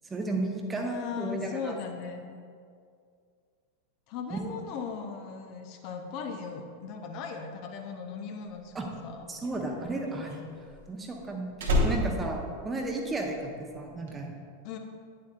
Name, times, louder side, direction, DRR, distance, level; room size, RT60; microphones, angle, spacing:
voice 1, 0.0-1.7 4.3-4.5 8.7-8.9 9.3-10.5 10.9-14.3, right 2 dB, 15° right, 2 dB, 0.9 m, -33 dB
voice 2, 0.8-2.4 4.1-9.3 14.6-14.8, left 6 dB, 45° left, 4 dB, 0.6 m, -38 dB
Slam, 8.6-13.4 13.7-14.1, left 1 dB, 60° right, 1.1 m, -31 dB
9.6 x 7.5 x 2.4 m, 2.2 s
figure-of-eight pair, 90°, 0 cm